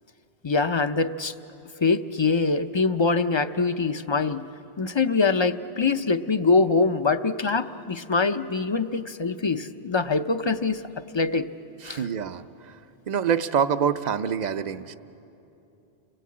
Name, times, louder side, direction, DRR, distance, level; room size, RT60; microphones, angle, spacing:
voice 1, 0.4-1.3 1.8-4.5 4.8-10.8 11.1-11.5 11.8-12.0, left 4 dB, 35° left, 9 dB, 0.5 m, -24 dB
voice 2, 11.8-12.8 13.1-14.9, right 7 dB, 45° right, 10 dB, 0.7 m, -26 dB
30.0 x 21.5 x 8.6 m, 2.8 s
omnidirectional pair, 1.1 m